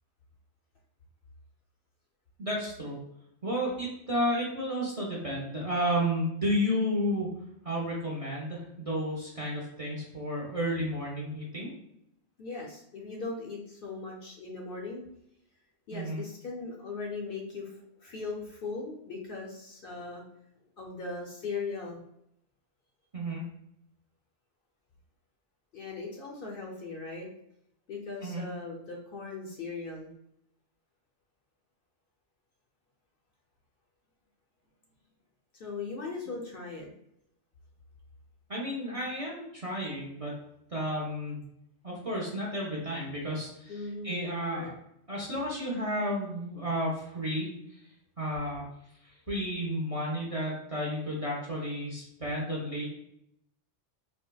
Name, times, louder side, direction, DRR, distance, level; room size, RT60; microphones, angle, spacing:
voice 1, 2.4-3.0 3.4-7.3 7.6-11.7 15.9-16.2 23.1-23.4 28.2-28.4 38.5-40.3 40.7-41.4 41.8-44.7 45.1-47.8 48.2-48.6 49.3-52.9, equal, 40° right, -4 dB, 0.5 m, -32 dB
voice 2, 12.4-15.0 15.9-20.2 20.8-22.0 25.7-27.3 27.9-30.1 35.5-36.9 43.7-44.7, left 3 dB, 60° left, -1 dB, 0.7 m, -39 dB
4.3 x 2.1 x 2.2 m, 0.75 s
omnidirectional pair, 1.2 m